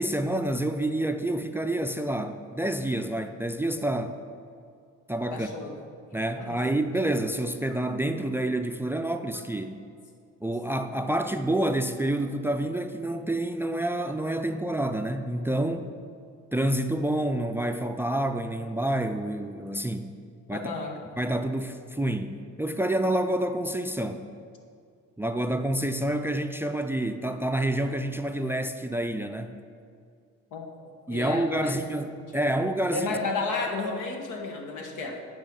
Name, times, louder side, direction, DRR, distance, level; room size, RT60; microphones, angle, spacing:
voice 1, 0.0-4.1 5.1-5.5 6.1-9.8 10.4-15.9 16.5-20.1 20.5-20.7 21.2-24.2 25.2-29.5 31.1-33.2, right 1 dB, 10° right, 8 dB, 0.4 m, -28 dB
voice 2, 5.3-5.7 6.4-6.7 7.7-7.8 20.5-21.0 30.5-30.7 31.1-31.8 32.9-35.2, left 3 dB, 85° left, 2 dB, 1.3 m, -32 dB
9.1 x 5.4 x 5.4 m, 2.3 s
cardioid pair, 90°, 30 cm